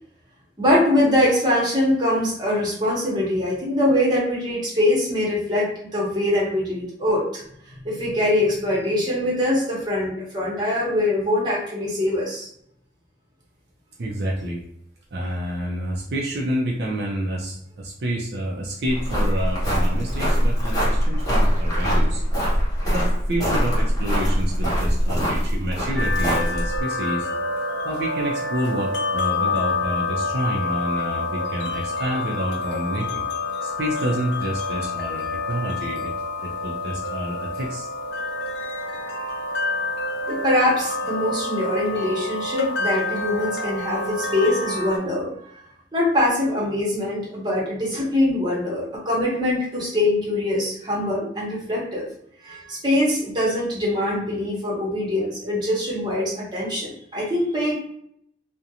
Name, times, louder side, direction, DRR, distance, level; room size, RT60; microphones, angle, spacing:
voice 1, 0.6-7.4 7.7-12.5 40.3-45.3 45.9-52.0 52.4-57.8, left 1 dB, 25° right, -4 dB, 0.9 m, -23 dB
voice 2, 14.0-14.6 15.1-22.2 22.9-27.3 27.8-33.2 33.6-36.1 36.4-37.9, right 1 dB, 65° right, -1 dB, 0.4 m, -28 dB
sound 1, 18.9-26.8, equal, 20° left, 0.8 m, -22 dB
sound 2, 26.0-45.0, left 3 dB, 75° left, 0.5 m, -28 dB
2.4 x 2.1 x 2.8 m, 0.71 s
head